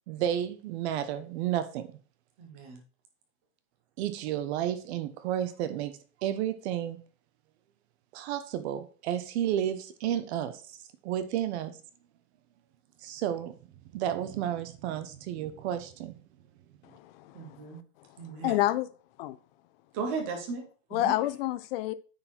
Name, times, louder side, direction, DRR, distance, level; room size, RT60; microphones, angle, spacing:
voice 1, 0.1-1.9 4.0-7.0 8.1-10.6 11.0-11.7 13.0-13.5 13.9-16.2, right 11 dB, 45° right, 0.9 m, -32 dB
voice 2, 2.4-2.8 17.3-17.8 18.2-18.6 19.9-21.2, right 4 dB, 10° right, 0.3 m, -36 dB
voice 3, 16.8-17.7 18.4-18.9 19.2-19.4 20.9-21.9, left 15 dB, 40° left, 0.6 m, -29 dB
9.5 x 4.3 x 4.4 m
supercardioid pair, 155°, 46 cm